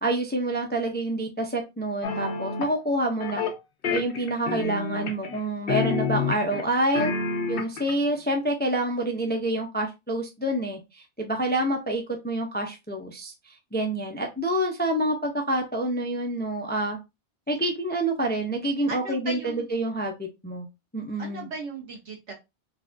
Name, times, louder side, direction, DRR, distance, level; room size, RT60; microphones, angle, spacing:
voice 1, 0.0-3.4 3.9-7.1 7.5-17.0 17.5-20.7 20.9-21.5, right 1 dB, 15° left, 3 dB, 0.3 m, -27 dB
sound 1, 2.0-2.7 3.2-3.6 3.8-5.4 5.7-6.6 6.9-7.9, left 5 dB, 60° left, 0.8 m, -28 dB
voice 2, 18.9-19.7 21.2-22.3, right 4 dB, 90° right, 0 dB, 1.5 m, -36 dB
4.0 x 2.4 x 2.5 m, 0.24 s
omnidirectional pair, 1.1 m